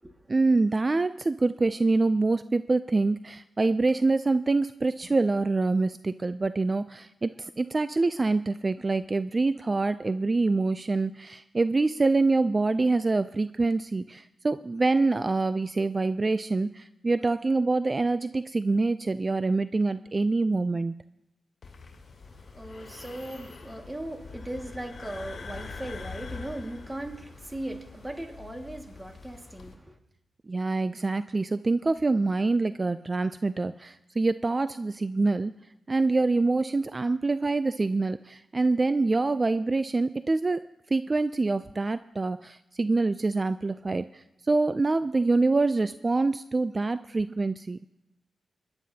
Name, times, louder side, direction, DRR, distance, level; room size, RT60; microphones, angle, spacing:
voice 1, 0.3-20.9 30.5-35.5 35.9-47.8, right 3 dB, 30° right, 0.4 m, -25 dB
sound 1, 21.6-29.7, left 4 dB, 60° left, 3.0 m, -44 dB
voice 2, 22.2-30.0, right 1 dB, 15° right, 1.9 m, -38 dB
27.0 x 11.0 x 2.8 m
cardioid pair, 70°, 0 cm